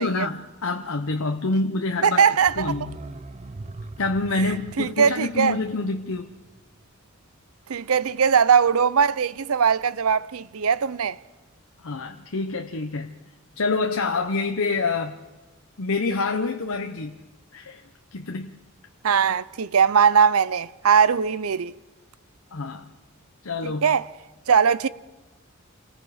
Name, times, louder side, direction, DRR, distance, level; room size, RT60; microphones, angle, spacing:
voice 1, 0.0-2.2 2.6-3.0 4.0-6.3 11.8-13.1 13.6-15.2 15.8-17.1 17.5-17.8 18.1-18.6 22.5-22.9 23.4-23.9, left 3 dB, 70° left, 0.9 m, -27 dB
voice 2, 2.0-2.7 4.8-5.6 7.7-11.2 19.0-21.7 23.6-24.1 24.5-24.9, right 6 dB, 80° right, 0.6 m, -20 dB
sound 1, 2.4-7.1 7.4-7.5, right 2 dB, 30° right, 0.7 m, -41 dB
28.5 x 19.0 x 4.9 m
head